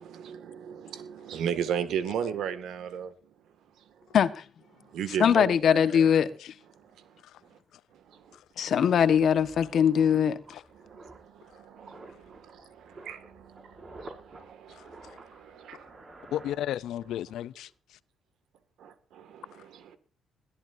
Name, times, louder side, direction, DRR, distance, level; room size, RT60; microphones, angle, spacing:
voice 1, 0.0-3.1 3.8-4.1 4.8-6.1 6.7-7.6 7.9-8.4 8.6-8.7 9.7-9.8 10.7-16.1 18.8-20.0, right 8 dB, 75° right, 2.1 m, -37 dB
voice 2, 4.1-4.4 5.2-6.3 8.6-10.6, left 8 dB, 60° left, 1.4 m, -22 dB
sound 1, 7.7-7.8 8.1-17.2 17.4-17.7, right 2 dB, 35° right, 6.1 m, -51 dB
voice 3, 14.7-15.2 16.3-17.7, left 12 dB, 80° left, 0.6 m, -34 dB
21.0 x 13.5 x 2.7 m
cardioid pair, 90°, 0 cm